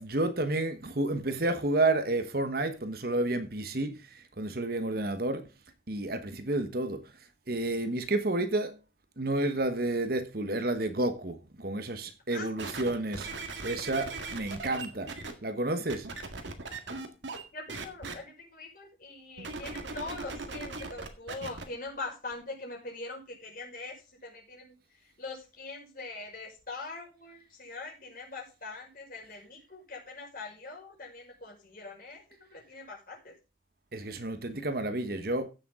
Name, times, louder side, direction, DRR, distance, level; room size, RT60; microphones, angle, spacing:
voice 1, 0.0-5.5 5.9-7.1 7.5-8.8 9.2-15.1 15.4-16.1 33.9-35.5, right 2 dB, 55° right, 1.3 m, -30 dB
sound 1, 12.6-15.3 15.9-17.4 17.7-18.1 19.4-21.6 22.3-22.4, right 3 dB, 80° right, 1.9 m, -39 dB
voice 2, 17.5-23.9 24.2-24.8 25.2-32.2 32.5-33.3, left 3 dB, 50° left, 5.4 m, -42 dB
15.5 x 7.0 x 3.7 m
head